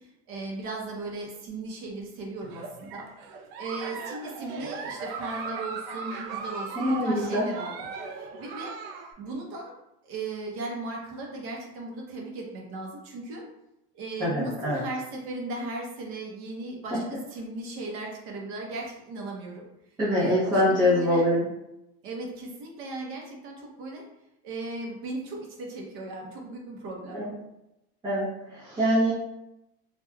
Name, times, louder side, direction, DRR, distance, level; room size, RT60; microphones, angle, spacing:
voice 1, 0.0-3.1 3.6-7.7 8.1-8.7 9.2-9.7 10.0-13.4 13.9-17.0 17.3-19.6 20.1-21.2 22.0-24.0 24.4-27.2, right 2 dB, 50° right, 0 dB, 0.7 m, -37 dB
Giggle, 2.4-9.1, right 4 dB, 85° right, 0.5 m, -38 dB
voice 2, 6.7-7.5 14.2-14.8 20.0-21.5 27.1-27.3 28.0-29.1, left 1 dB, 15° right, -11 dB, 0.7 m, -24 dB
3.1 x 2.2 x 2.2 m, 0.88 s
cardioid pair, 160°, 29 cm